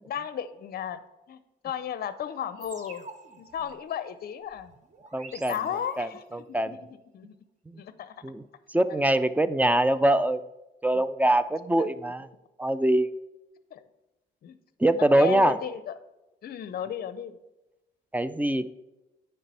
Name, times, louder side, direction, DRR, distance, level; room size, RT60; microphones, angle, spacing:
voice 1, 0.1-1.0 1.3-1.4 1.6-3.0 3.4-4.7 5.3-6.8 7.1-7.4 7.8-8.1 8.9-9.1 9.7-9.8 11.2-11.3 11.8-11.9 13.7-13.9 14.4-14.6 15.0-15.9 16.4-17.3, left 9 dB, 50° left, 13 dB, 0.5 m, -34 dB
sound 1, 2.6-6.3, right 4 dB, 35° right, 0.8 m, -49 dB
voice 2, 5.1-5.6 6.0-6.8 7.7-7.8 8.2-8.4 8.7-10.4 10.8-12.3 12.6-13.1 14.8-15.6 18.1-18.7, right 1 dB, 10° right, 14 dB, 0.3 m, -23 dB
9.3 x 3.3 x 5.5 m, 1.0 s
cardioid pair, 90°, 20 cm